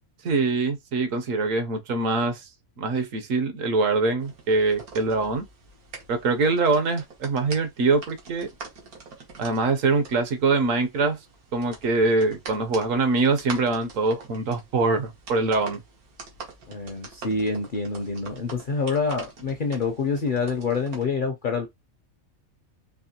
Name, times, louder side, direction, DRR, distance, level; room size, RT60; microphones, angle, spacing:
voice 1, 0.2-2.4 2.8-5.4 6.1-8.5 9.4-11.2 11.5-15.8, right 3 dB, 70° right, 1.1 m, -23 dB
sound 1, 4.2-21.1, right 4 dB, 90° right, 1.8 m, -44 dB
voice 2, 16.7-21.7, left 4 dB, 50° left, 0.6 m, -27 dB
4.6 x 2.9 x 2.8 m
omnidirectional pair, 1.5 m